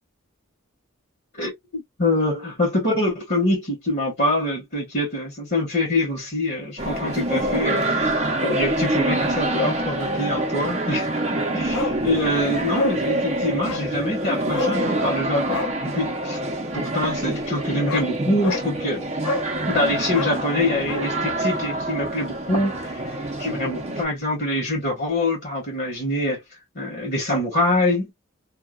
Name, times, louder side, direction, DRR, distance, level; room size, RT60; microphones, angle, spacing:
voice 1, 1.3-8.1 8.4-11.1 11.3-16.4 16.7-19.0 19.7-22.9 23.4-26.4 26.7-28.1, left 1 dB, 50° left, 1.4 m, -25 dB
sound 1, 6.8-24.1, right 1 dB, 30° right, 0.7 m, -26 dB
Bark, 11.7-12.0 12.3-12.4 12.7-13.0 13.6-13.9 14.5-14.8 15.5-15.8 17.4-17.5 17.9-18.1 18.4-18.7 19.2-19.5 20.1-21.1 21.4-21.5, left 4 dB, 85° left, 0.4 m, -29 dB
2.8 x 2.3 x 2.3 m
head